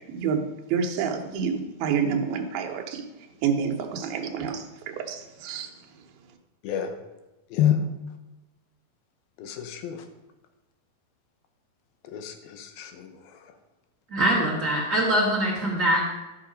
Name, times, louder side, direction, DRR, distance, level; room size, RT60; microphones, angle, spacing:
voice 1, 0.0-3.1 3.4-5.7, right 6 dB, 80° right, 4 dB, 2.8 m, -28 dB
voice 2, 6.6-7.0 7.5-7.8 9.4-10.0 12.1-13.4, left 10 dB, 75° left, 7 dB, 2.6 m, -28 dB
voice 3, 14.1-16.1, right 1 dB, 30° right, -4 dB, 1.5 m, -23 dB
13.5 x 6.1 x 5.1 m, 1.0 s
omnidirectional pair, 4.5 m